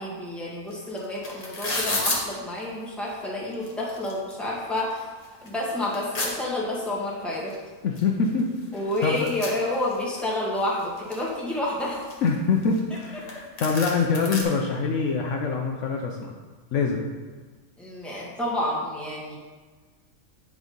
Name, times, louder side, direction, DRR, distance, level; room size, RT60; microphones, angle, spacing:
voice 1, 0.0-5.1 5.4-7.5 8.7-12.0 17.8-19.4, left 1 dB, ahead, -6 dB, 1.9 m, -29 dB
sound 1, 0.7-0.8 1.0-2.2 3.1-3.2 3.5-4.3 4.8-4.9 5.2-6.3 7.5-7.6 8.0-8.1 8.3-10.2 10.6-11.3 11.8-13.0 13.3-13.4 13.6-14.4, left 2 dB, 30° left, 1.3 m, -31 dB
voice 2, 7.8-9.3 12.2-16.3 16.7-17.1, left 4 dB, 65° left, 1 dB, 1.0 m, -25 dB
8.6 x 4.7 x 5.2 m, 1.4 s
omnidirectional pair, 1.4 m